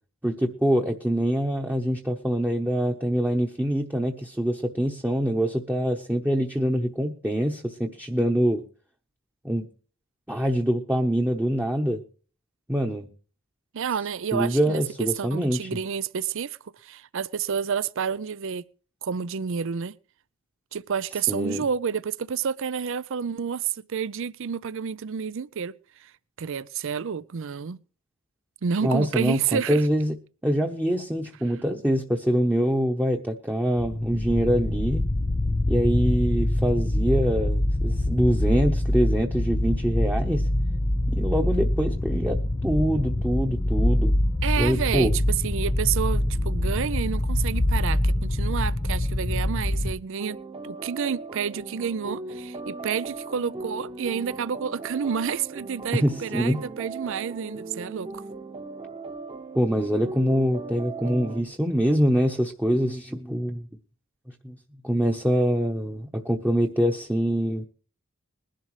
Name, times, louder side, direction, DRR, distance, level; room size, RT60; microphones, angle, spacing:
voice 1, 0.2-8.6 9.4-9.7 10.3-12.0 12.7-13.1 14.3-15.7 21.3-21.6 28.8-30.1 30.4-35.1 35.7-40.5 41.1-44.1 44.6-45.2 55.9-56.6 59.6-63.6 64.4-64.6 64.8-67.6, equal, 10° right, 1.0 m, -24 dB
voice 2, 13.7-14.8 15.2-16.6 16.8-18.6 19.0-19.9 20.7-25.7 26.0-26.1 26.4-27.8 28.6-29.9 44.4-50.4 50.6-58.2, right 7 dB, 65° right, 0.5 m, -29 dB
sound 1, 33.8-49.9, left 1 dB, 20° left, 0.5 m, -25 dB
sound 2, 50.2-61.4, right 3 dB, 25° right, 1.2 m, -38 dB
21.0 x 11.5 x 3.2 m
head